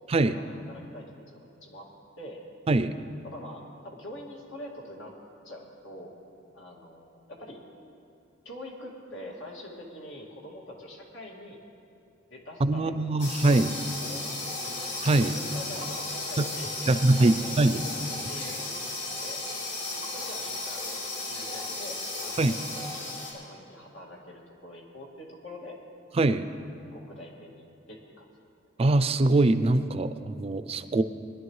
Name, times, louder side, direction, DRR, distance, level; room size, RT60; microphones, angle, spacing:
voice 1, 0.1-1.9 2.2-2.4 3.2-5.1 5.4-6.1 6.5-7.6 8.4-11.6 12.3-13.5 14.0-14.8 15.2-17.5 18.3-18.7 19.1-19.4 20.0-21.0 21.3-25.8 26.9-28.3, left 1 dB, 90° left, -2 dB, 2.3 m, -45 dB
voice 2, 12.6-13.7 15.0-15.4 16.4-16.5 16.9-17.8 22.4-22.5 26.2-26.5 28.8-31.0, right 2 dB, 30° right, 12 dB, 0.4 m, -23 dB
sound 1, 13.2-23.3, left 2 dB, 70° left, 3.5 m, -35 dB
21.5 x 11.5 x 3.2 m, 2.6 s
head